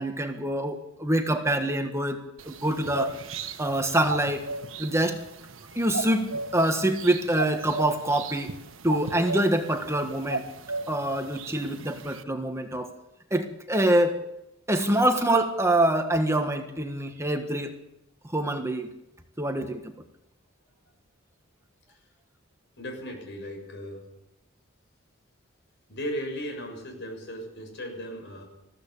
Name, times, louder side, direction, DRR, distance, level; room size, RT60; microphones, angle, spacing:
voice 1, 0.0-2.2 2.4-3.1 3.6-4.4 4.8-5.2 5.7-8.5 8.8-10.4 10.9-12.9 13.3-14.2 14.7-17.7 18.3-18.9 19.4-19.8, right 1 dB, 15° right, 6 dB, 1.5 m, -25 dB
sound 1, 2.4-12.2, right 3 dB, 75° right, 1.4 m, -36 dB
voice 2, 22.8-24.0 25.9-28.4, equal, 60° left, 4 dB, 6.8 m, -36 dB
21.0 x 15.5 x 8.7 m, 0.85 s
head